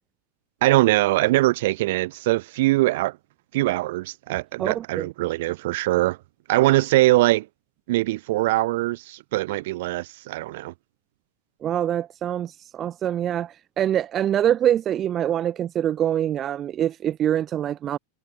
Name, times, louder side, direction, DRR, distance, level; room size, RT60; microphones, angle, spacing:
voice 1, 0.6-3.2 3.5-6.2 6.5-7.5 7.9-10.7, right 18 dB, 50° right, 1.1 m, -22 dB
voice 2, 4.6-5.1 11.6-18.0, right 10 dB, 30° right, 0.4 m, -24 dB
figure-of-eight pair, 90°, 0 cm